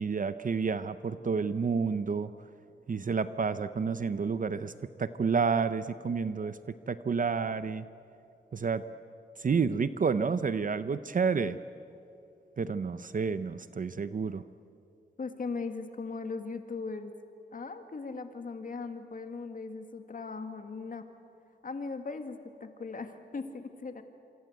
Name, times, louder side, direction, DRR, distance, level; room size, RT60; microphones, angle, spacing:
voice 1, 0.0-2.3 2.9-4.7 5.0-7.9 8.5-8.8 9.4-11.6 12.6-14.4, right 5 dB, 45° right, 12 dB, 0.8 m, -30 dB
voice 2, 15.2-17.1 17.5-21.1 21.6-24.0, left 4 dB, 50° left, 7 dB, 2.1 m, -38 dB
27.5 x 24.5 x 8.1 m, 2.6 s
wide cardioid pair, 105°, 18 cm